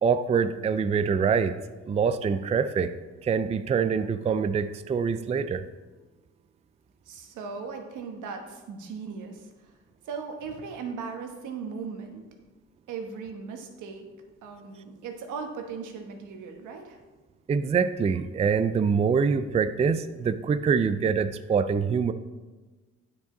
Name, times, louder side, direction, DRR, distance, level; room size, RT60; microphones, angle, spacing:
voice 1, 0.0-1.6 1.9-2.9 3.2-5.7 17.5-22.1, right 6 dB, 20° right, 11 dB, 0.3 m, -25 dB
voice 2, 7.1-9.7 10.0-12.2 12.9-14.1 14.4-17.0, right 5 dB, 85° right, 4 dB, 1.2 m, -38 dB
9.1 x 5.8 x 3.8 m, 1.2 s
cardioid pair, 90°, 30 cm